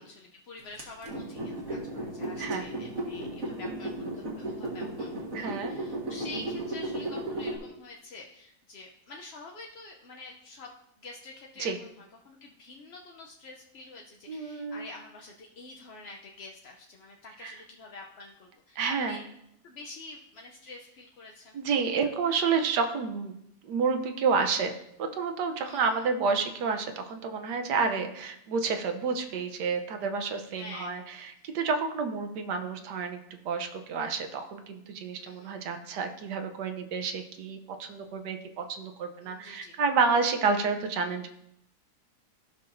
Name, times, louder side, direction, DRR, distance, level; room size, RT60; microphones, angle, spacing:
voice 1, 0.0-10.7 11.0-19.2 19.6-21.6 25.6-26.1 30.5-31.0 35.2-35.6 39.2-39.8, left 3 dB, 55° left, 0 dB, 0.7 m, -47 dB
sound 1, 0.8-7.6, right 1 dB, 55° right, 1.8 m, -35 dB
voice 2, 5.3-5.8 11.6-11.8 14.3-14.9 17.4-17.6 18.8-19.3 21.5-23.4 23.6-24.7 25.0-41.3, right 5 dB, 85° right, 6 dB, 1.4 m, -30 dB
15.0 x 5.7 x 2.6 m, 0.79 s
omnidirectional pair, 1.7 m